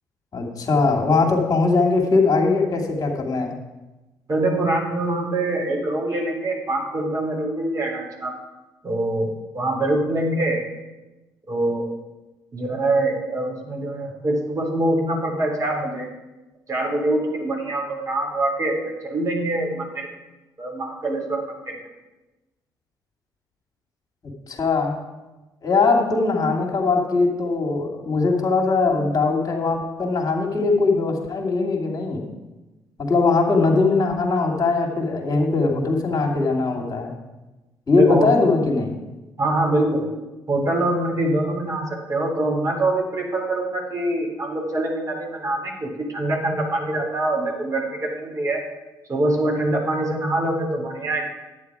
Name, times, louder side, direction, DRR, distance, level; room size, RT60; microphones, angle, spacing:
voice 1, 0.3-3.5 24.5-24.9 25.6-32.3 33.0-37.1 37.9-39.0, left 3 dB, 40° left, 1 dB, 2.6 m, -20 dB
voice 2, 4.3-8.3 8.8-10.6 11.5-11.9 12.5-16.1 16.7-20.1 20.6-21.8 37.9-38.4 39.4-40.1 40.5-48.6 49.1-51.3, right 2 dB, 35° right, -1 dB, 4.0 m, -24 dB
10.5 x 9.3 x 4.9 m, 1.1 s
hypercardioid pair, 50°, 10 cm